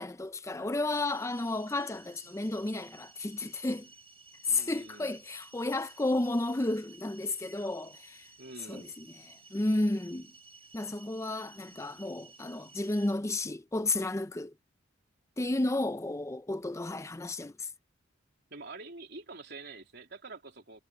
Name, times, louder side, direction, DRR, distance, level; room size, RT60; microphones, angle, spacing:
voice 1, 0.0-3.9 4.5-8.3 8.7-9.1 9.5-10.3 10.7-14.5 15.4-17.7, left 2 dB, 15° left, 0.5 m, -32 dB
sound 1, 0.9-13.2, right 3 dB, 30° right, 3.3 m, -56 dB
voice 2, 4.5-5.2 8.4-9.0 18.5-20.8, right 3 dB, 60° right, 3.2 m, -47 dB
head